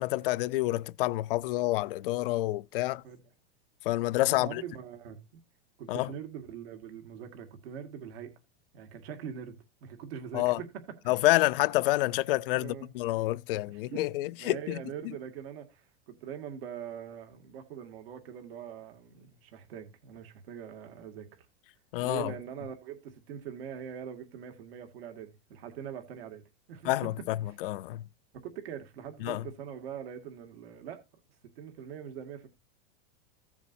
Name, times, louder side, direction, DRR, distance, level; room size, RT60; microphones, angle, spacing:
voice 1, 0.0-3.0 3.8-4.6 5.9-6.1 10.3-10.6 11.1-14.8 21.9-22.3 26.8-28.1 29.2-29.4, left 18 dB, 60° left, 0.5 m, -28 dB
voice 2, 4.2-5.2 5.8-8.3 8.7-11.3 12.5-13.2 13.5-14.1 14.4-21.5 22.0-26.4 26.7-27.1 27.5-27.6 28.3-31.0 31.6-32.5, right 8 dB, 70° right, 2.1 m, -43 dB
16.0 x 7.1 x 2.6 m
supercardioid pair, 170°, 31 cm